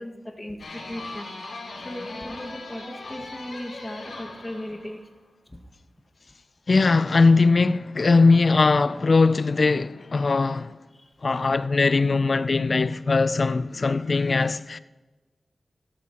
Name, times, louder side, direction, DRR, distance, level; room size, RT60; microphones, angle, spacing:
voice 1, 0.0-1.3 1.8-5.0 5.5-5.6 10.9-11.5, left 1 dB, 20° left, 1.9 m, -37 dB
sound 1, 0.6-5.1, left 2 dB, 85° left, 5.0 m, -39 dB
voice 2, 6.7-10.8 11.2-14.8, left 3 dB, 50° left, 0.4 m, -20 dB
16.5 x 13.0 x 3.0 m
wide cardioid pair, 85°, 0 cm